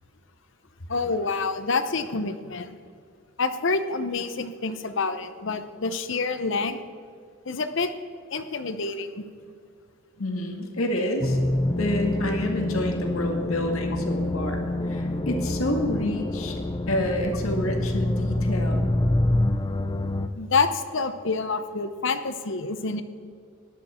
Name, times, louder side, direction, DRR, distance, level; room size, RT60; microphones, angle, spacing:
voice 1, 0.9-2.8 3.4-6.8 7.5-7.9 8.3-9.2 20.3-23.0, left 4 dB, 60° left, 10 dB, 0.8 m, -27 dB
voice 2, 10.2-11.4 11.7-16.6 16.9-18.9, left 1 dB, 80° left, 3 dB, 1.8 m, -28 dB
sound 1, 11.2-20.3, left 1 dB, 20° left, 0.6 m, -26 dB
15.0 x 11.0 x 4.3 m, 2.2 s
head